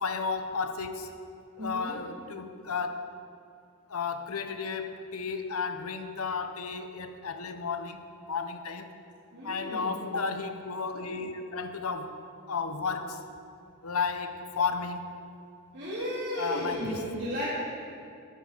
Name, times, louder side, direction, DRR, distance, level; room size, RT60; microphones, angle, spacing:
voice 1, 0.0-1.1 1.6-3.1 3.9-8.9 9.4-12.2 12.5-13.2 13.8-15.1 16.4-17.0, left 5 dB, 75° left, 8 dB, 0.9 m, -33 dB
voice 2, 1.6-2.0 9.3-10.0 15.7-17.5, equal, 55° right, -12 dB, 3.3 m, -34 dB
12.5 x 10.5 x 4.6 m, 2.4 s
head